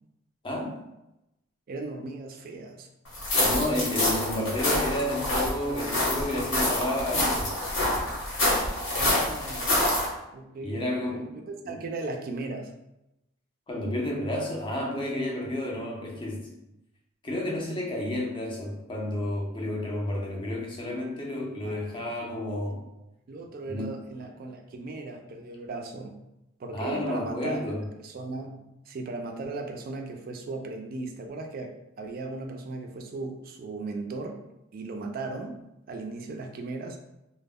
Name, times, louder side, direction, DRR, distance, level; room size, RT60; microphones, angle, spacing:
voice 1, 0.4-0.8 3.4-7.6 10.6-11.3 11.6-11.8 13.7-16.5 17.2-22.8 23.6-24.0 26.7-27.9, left 1 dB, 25° left, -1 dB, 0.4 m, -31 dB
voice 2, 1.7-2.9 8.9-9.8 10.3-12.7 21.7-22.0 22.7-22.9 23.3-26.1 26.6-27.6 28.0-31.7 32.0-34.4 34.7-35.6 35.9-37.0, right 3 dB, 45° right, 3 dB, 0.3 m, -37 dB
sound 1, 3.1-10.1, left 1 dB, 85° left, 0.9 m, -26 dB
2.0 x 2.0 x 3.5 m, 0.90 s
head